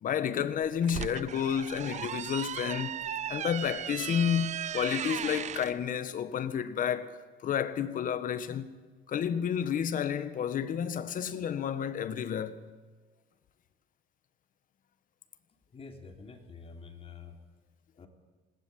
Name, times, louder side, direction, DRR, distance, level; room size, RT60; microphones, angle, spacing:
voice 1, 0.0-3.0 3.3-8.7 9.1-12.6, left 8 dB, 55° left, 1.5 m, -31 dB
sound 1, 0.6-5.7, right 10 dB, 45° right, 0.6 m, -37 dB
voice 2, 15.7-17.4 18.0-18.1, left 5 dB, 35° left, 3.4 m, -47 dB
20.0 x 18.5 x 8.7 m
cardioid pair, 110°, 17 cm